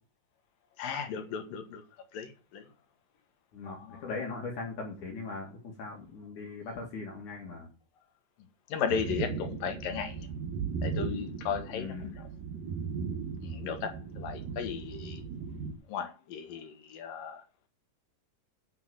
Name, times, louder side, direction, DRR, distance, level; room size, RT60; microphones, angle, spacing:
voice 1, 0.8-1.8 2.1-2.6 3.6-4.1 8.7-10.3 10.8-12.3 13.4-15.2 15.9-17.4, left 7 dB, 85° left, 3.2 m, -36 dB
voice 2, 3.5-7.7 11.7-12.1, left 3 dB, 65° left, 3.5 m, -39 dB
sound 1, 8.9-15.7, right 5 dB, 80° right, 3.2 m, -37 dB
9.1 x 6.1 x 7.7 m
omnidirectional pair, 3.9 m